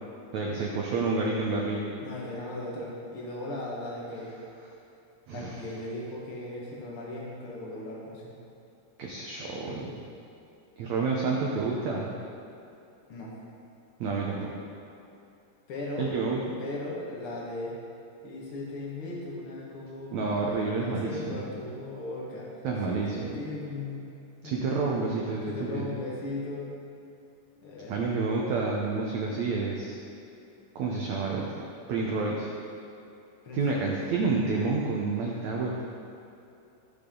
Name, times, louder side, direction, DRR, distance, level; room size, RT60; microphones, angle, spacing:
voice 1, 0.3-1.9 5.3-5.6 9.0-9.9 10.8-12.1 14.0-14.5 16.0-16.4 20.1-21.4 22.6-23.4 24.4-25.9 27.9-30.0 30.7-31.5 31.9-32.5 33.5-35.8, right 4 dB, 80° right, -2 dB, 1.6 m, -29 dB
voice 2, 2.0-4.4 5.3-8.3 13.1-13.3 15.7-16.2 16.6-17.8 18.2-22.5 22.9-24.1 24.4-24.9 25.5-26.7 27.6-28.0 33.4-33.9, left 2 dB, 45° left, -4 dB, 1.9 m, -37 dB
15.5 x 6.8 x 3.9 m, 2.7 s
omnidirectional pair, 4.5 m